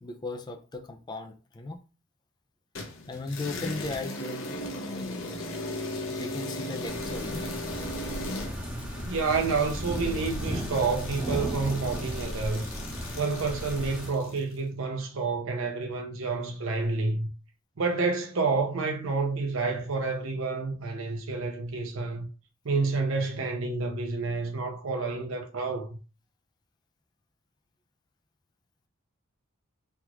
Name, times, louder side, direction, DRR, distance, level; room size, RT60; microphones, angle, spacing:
voice 1, 0.0-1.8 3.1-5.2 6.1-7.5, left 2 dB, 20° left, 0.4 m, -37 dB
sound 1, 2.7-14.5, left 2 dB, 70° left, 0.7 m, -37 dB
sound 2, 6.8-14.1, equal, 5° right, 0.8 m, -35 dB
voice 2, 9.0-12.7 13.2-17.3 17.8-22.3 22.6-26.0, right 4 dB, 70° right, 0.7 m, -29 dB
3.3 x 2.4 x 2.9 m
head